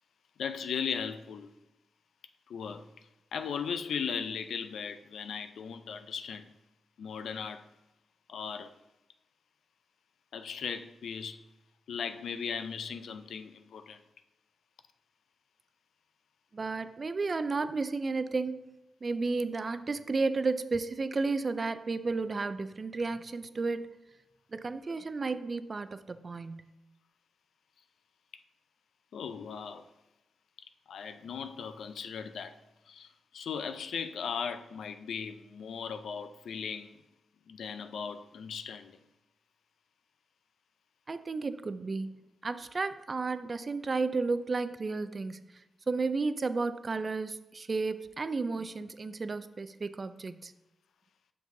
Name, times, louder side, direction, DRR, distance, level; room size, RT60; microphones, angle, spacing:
voice 1, 0.4-1.5 2.5-2.9 3.3-6.5 7.0-7.7 8.3-8.7 10.3-11.4 11.9-14.0 29.1-29.9 30.9-32.6 32.9-37.0 37.5-39.0, left 6 dB, 85° left, 0.4 m, -37 dB
voice 2, 16.5-18.6 19.0-24.0 24.5-26.7 41.1-45.6 45.9-50.5, right 3 dB, 40° right, 0.4 m, -33 dB
7.1 x 6.0 x 2.7 m
cardioid pair, 75°, 0 cm